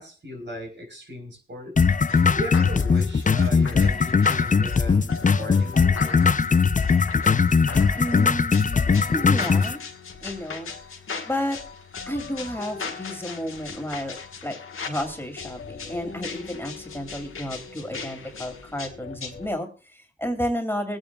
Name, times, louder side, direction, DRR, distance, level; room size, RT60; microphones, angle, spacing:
voice 1, 0.0-1.9 2.3-6.2, equal, 60° right, 3 dB, 4.0 m, -37 dB
sound 1, 1.8-9.8, left 5 dB, 40° left, 0.5 m, -20 dB
sound 2, 1.9-19.5, left 5 dB, 85° left, 1.4 m, -38 dB
voice 2, 8.0-9.8 10.2-10.7 11.2-11.6 12.1-14.2 14.4-14.6 14.8-21.0, equal, 10° left, 3 dB, 2.7 m, -31 dB
23.0 x 8.9 x 2.3 m, 0.35 s
cardioid pair, 50°, 21 cm